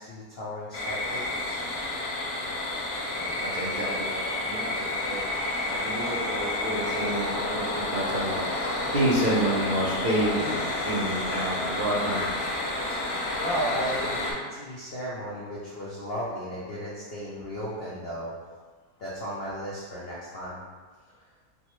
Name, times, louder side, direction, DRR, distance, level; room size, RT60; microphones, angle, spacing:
voice 1, 0.0-1.6 12.9-18.3 19.0-20.6, equal, 85° left, -7 dB, 0.5 m, -35 dB
sound 1, 0.7-14.3, left 2 dB, 55° left, 0.7 m, -30 dB
voice 2, 3.0-12.3, right 1 dB, 85° right, -8 dB, 0.4 m, -30 dB
4.3 x 2.0 x 3.0 m, 1.5 s
omnidirectional pair, 1.8 m